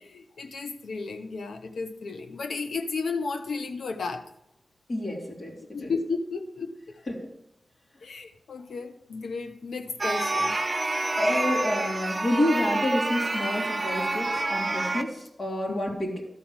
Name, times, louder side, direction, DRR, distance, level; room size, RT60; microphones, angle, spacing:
voice 1, 0.0-4.2 5.7-6.7 8.0-10.6, left 4 dB, 90° left, 7 dB, 0.9 m, -33 dB
voice 2, 4.9-5.5 5.8-5.9 7.1-7.2 11.2-16.2, left 1 dB, 60° left, -3 dB, 2.8 m, -28 dB
sound 1, 10.0-15.0, right 2 dB, 35° right, 1.0 m, -28 dB
12.0 x 4.2 x 7.3 m, 0.82 s
cardioid pair, 55°, 0 cm